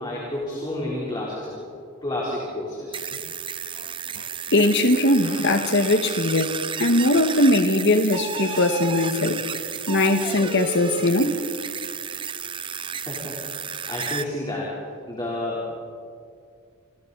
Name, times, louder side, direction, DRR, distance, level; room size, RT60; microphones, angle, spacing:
voice 1, 0.0-1.7 2.0-3.0 12.9-13.5 13.9-14.8 15.1-15.7, left 1 dB, 20° left, 3.7 m, -30 dB
sound 1, 2.9-14.3, right 6 dB, 25° right, 0.6 m, -32 dB
voice 2, 4.5-9.4 9.9-11.4, left 1 dB, 55° left, 1.7 m, -20 dB
27.5 x 26.0 x 4.1 m
head